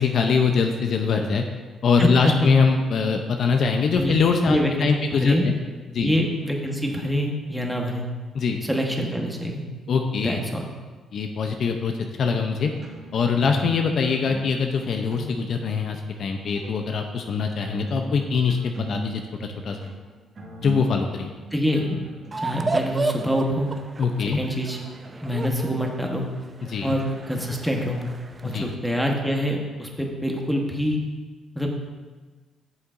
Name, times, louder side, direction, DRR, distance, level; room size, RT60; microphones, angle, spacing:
voice 1, 0.0-1.4 1.8-5.6 5.9-6.1 8.3-8.6 9.9-10.4 11.1-11.9 12.2-12.7 13.1-19.8 20.6-21.3 24.0-24.4 26.7-27.0 28.5-28.6, left 5 dB, 60° left, 4 dB, 0.6 m, -23 dB
voice 2, 2.0-2.5 4.0-4.2 4.5-5.5 6.0-8.0 8.6-9.6 10.2-10.7 21.5-22.0 22.4-23.7 24.3-24.8 25.2-26.3 26.8-28.1 28.4-31.0 31.5-31.7, equal, ahead, 0 dB, 1.2 m, -25 dB
sound 1, 12.5-13.7 14.0-15.8 16.3-16.7 17.3-22.9, right 1 dB, 50° right, 2.1 m, -38 dB
sound 2, 22.3-28.7, right 3 dB, 30° right, 0.4 m, -32 dB
8.5 x 6.9 x 2.6 m, 1.4 s
cardioid pair, 90°, 0 cm